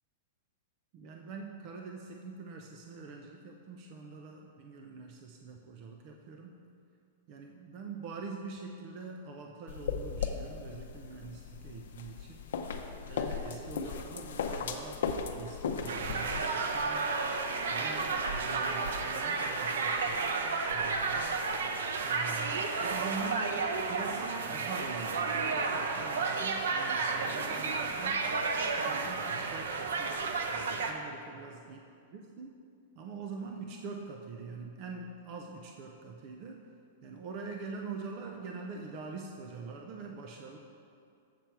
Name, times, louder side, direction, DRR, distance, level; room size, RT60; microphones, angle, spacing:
voice 1, 0.9-6.6 7.3-12.4 13.1-17.0 17.7-20.2 20.6-21.3 22.0-23.6 23.8-30.1 30.5-31.8 32.1-32.5 33.0-36.7 37.0-40.6, right 4 dB, 30° right, 2 dB, 0.5 m, -44 dB
sound 1, 9.7-16.4, left 6 dB, 70° left, 0.6 m, -37 dB
sound 2, 15.9-30.9, right 4 dB, 85° right, 0.7 m, -32 dB
7.4 x 6.9 x 4.5 m, 2.4 s
supercardioid pair, 180°, 0 cm